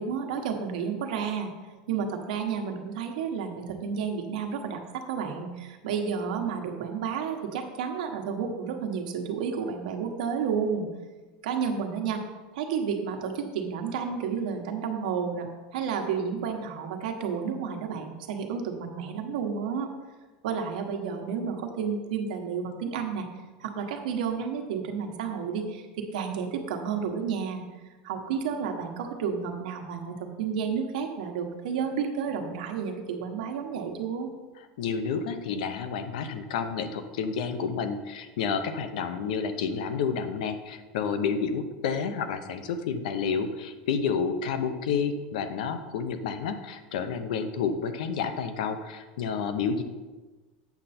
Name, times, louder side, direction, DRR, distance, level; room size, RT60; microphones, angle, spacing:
voice 1, 0.0-1.5 1.9-10.9 11.4-12.2 12.5-19.9 20.4-23.3 23.6-25.9 26.1-27.6 28.0-34.3, right 6 dB, 90° right, 4 dB, 1.2 m, -31 dB
voice 2, 34.8-49.8, left 6 dB, 80° left, 9 dB, 0.8 m, -30 dB
8.2 x 6.6 x 4.3 m, 1.3 s
supercardioid pair, 180°, 4 cm